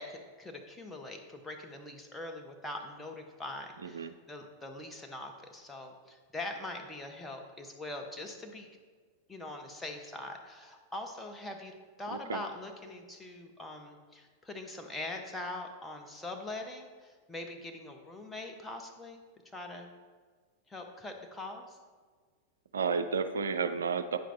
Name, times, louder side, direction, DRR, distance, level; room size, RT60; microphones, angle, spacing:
voice 1, 0.0-8.7 9.3-11.7 12.0-19.2 19.5-19.9 20.7-21.8, left 2 dB, 10° left, 2 dB, 1.0 m, -42 dB
voice 2, 3.8-4.1 12.1-12.4 22.7-24.2, right 5 dB, 70° right, 9 dB, 0.4 m, -32 dB
9.1 x 6.2 x 3.4 m, 1.5 s
figure-of-eight pair, 90°, 0 cm